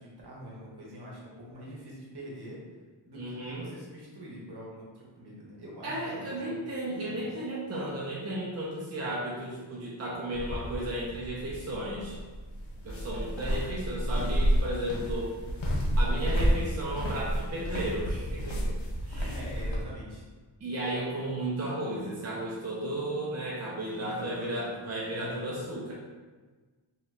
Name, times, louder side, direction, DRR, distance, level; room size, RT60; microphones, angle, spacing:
voice 1, 0.0-2.6 3.0-6.6 7.0-7.3 19.2-20.3 24.0-24.7 25.1-25.7, equal, 60° right, -5 dB, 1.0 m, -44 dB
voice 2, 3.1-3.7 5.8-12.2 12.8-15.3 16.0-18.8 19.0-19.3 20.6-25.9, right 1 dB, 35° right, -5 dB, 0.5 m, -34 dB
sound 1, 10.3-19.8, equal, 80° left, 0.7 m, -30 dB
2.8 x 2.3 x 3.1 m, 1.3 s
wide cardioid pair, 80°, 45 cm